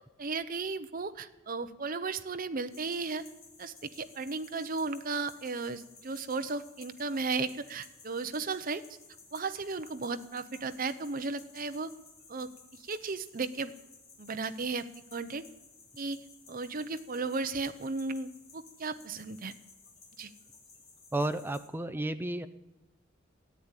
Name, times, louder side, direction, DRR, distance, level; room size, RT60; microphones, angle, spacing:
voice 1, 0.2-3.2 3.6-8.8 9.3-11.9 12.3-13.7 14.2-15.4 16.0-16.2 16.5-19.5 20.2-20.3, right 4 dB, 45° right, 10 dB, 0.7 m, -35 dB
sound 1, 2.7-21.7, left 4 dB, 50° left, 3.4 m, -56 dB
voice 2, 21.1-22.5, right 1 dB, 10° right, 9 dB, 0.6 m, -32 dB
14.0 x 8.9 x 9.9 m, 1.0 s
head